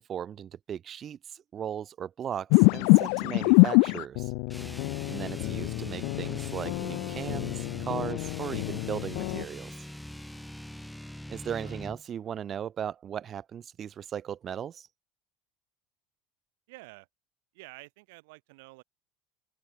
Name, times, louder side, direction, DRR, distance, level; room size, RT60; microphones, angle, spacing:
voice 1, 0.0-4.3 5.1-9.7 11.3-14.9, right 9 dB, 30° right, 1.3 m, -37 dB
sound 1, 2.5-9.4, left 40 dB or more, 70° left, 0.5 m, -25 dB
sound 2, 4.5-12.0, left 1 dB, ahead, 3.8 m, -43 dB
voice 2, 11.5-11.8 16.7-17.1 17.5-18.8, right 25 dB, 85° right, 7.2 m, -50 dB
open air
cardioid pair, 155°, 0 cm